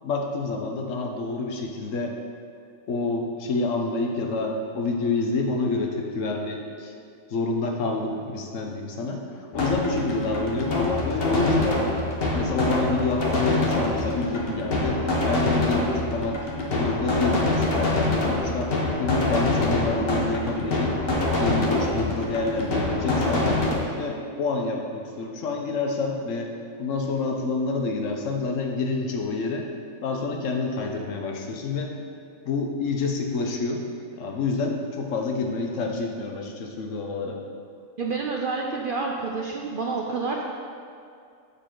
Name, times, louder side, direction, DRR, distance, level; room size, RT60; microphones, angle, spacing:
voice 1, 0.0-2.2 2.9-6.9 7.3-11.8 12.3-16.4 16.7-18.7 19.0-20.9 21.4-26.5 26.8-29.7 30.0-31.9 32.4-33.9 34.2-37.4, left 3 dB, 70° left, 2 dB, 1.2 m, -28 dB
sound 1, 9.5-23.8, left 2 dB, 45° left, 1.1 m, -25 dB
voice 2, 38.0-40.4, right 4 dB, 60° right, -1 dB, 0.6 m, -28 dB
7.2 x 6.7 x 3.7 m, 2.4 s
omnidirectional pair, 1.4 m